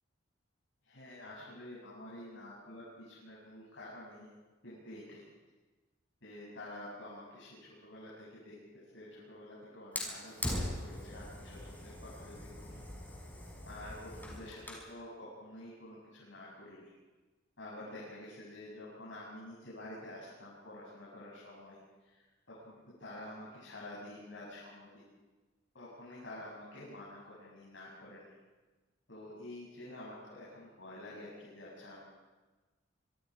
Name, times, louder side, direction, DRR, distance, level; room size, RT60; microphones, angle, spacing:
voice 1, 0.8-4.3 4.6-5.2 6.2-12.8 13.6-16.9 17.6-25.0 25.7-28.3 29.1-32.0, left 1 dB, 70° left, -6 dB, 7.8 m, -49 dB
Fire, 9.9-14.9, left 1 dB, 10° left, 5.8 m, -41 dB
27.5 x 24.5 x 5.0 m, 1.2 s
head